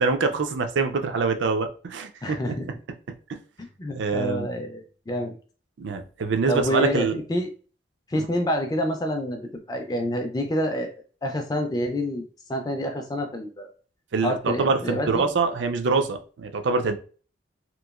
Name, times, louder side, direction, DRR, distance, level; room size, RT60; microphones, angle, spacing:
voice 1, 0.0-2.5 3.3-3.4 3.9-4.5 5.8-7.2 8.1-8.2 14.1-17.0, right 4 dB, 70° right, 7 dB, 0.4 m, -25 dB
voice 2, 2.2-2.7 3.6-5.3 6.5-7.5 8.1-9.4 9.7-10.9 11.2-13.7 14.2-15.3, equal, 20° left, 5 dB, 0.3 m, -28 dB
3.0 x 2.5 x 2.3 m, 0.39 s
head